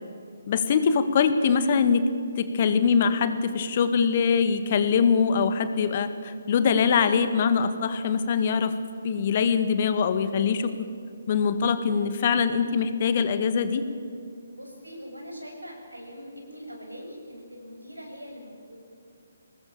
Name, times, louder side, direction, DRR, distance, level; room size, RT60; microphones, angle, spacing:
voice 1, 0.5-2.0 2.4-8.7 9.0-10.7 11.3-13.9, left 6 dB, 40° left, 10 dB, 1.7 m, -23 dB
voice 2, 14.5-18.8, equal, 85° right, 1 dB, 6.9 m, -42 dB
24.0 x 19.5 x 7.4 m, 2.3 s
figure-of-eight pair, 140°, 0 cm